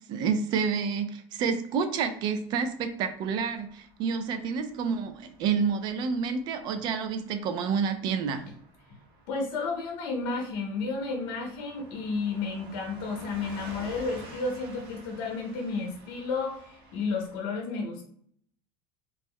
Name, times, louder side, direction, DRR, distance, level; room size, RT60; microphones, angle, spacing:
voice 1, 0.0-8.4, right 6 dB, 35° right, 9 dB, 0.4 m, -29 dB
Car passing by / Truck, 3.2-17.4, right 1 dB, 85° right, 1.1 m, -50 dB
voice 2, 9.3-18.1, left 4 dB, 65° left, 1 dB, 0.8 m, -32 dB
3.0 x 2.0 x 3.6 m, 0.63 s
cardioid pair, 170°, 12 cm